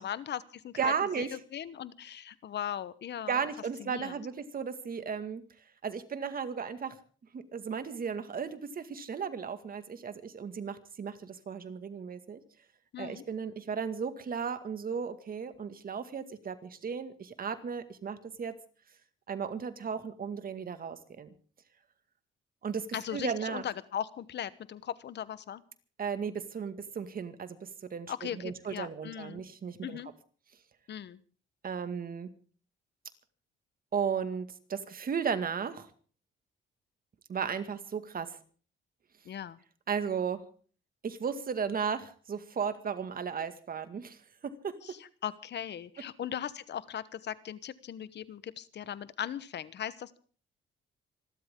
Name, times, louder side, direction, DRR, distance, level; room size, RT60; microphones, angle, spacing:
voice 1, 0.0-3.4 3.8-4.2 12.9-13.2 22.9-25.6 28.1-29.4 29.8-30.1 30.9-31.2 39.2-39.6 44.8-50.2, left 10 dB, 60° left, 16 dB, 1.0 m, -39 dB
voice 2, 0.8-1.4 3.3-5.4 5.8-7.0 7.3-12.4 13.0-18.5 19.3-21.3 22.6-22.9 23.1-23.6 26.0-30.0 31.6-32.3 33.9-35.9 37.3-38.4 39.9-40.4 41.0-44.7, right 6 dB, 45° right, 10 dB, 2.0 m, -35 dB
26.5 x 13.0 x 3.7 m, 0.42 s
cardioid pair, 90°, 20 cm